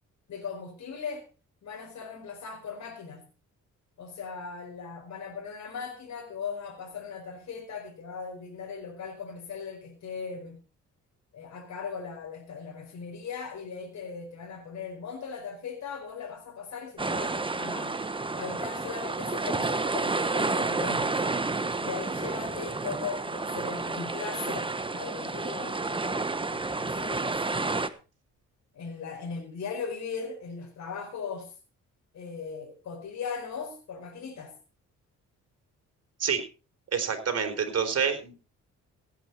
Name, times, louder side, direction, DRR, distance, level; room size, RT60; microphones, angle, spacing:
voice 1, 0.3-1.3 1.6-3.2 4.0-10.6 11.3-18.0 18.4-21.2 21.8-27.9 28.7-31.6 32.1-34.5, left 5 dB, 65° left, 4.8 m, -39 dB
sound 1, 17.0-27.9, right 3 dB, 15° right, 1.2 m, -30 dB
voice 2, 36.9-38.4, right 6 dB, 55° right, 4.3 m, -27 dB
17.0 x 9.2 x 4.6 m
cardioid pair, 90°, 30 cm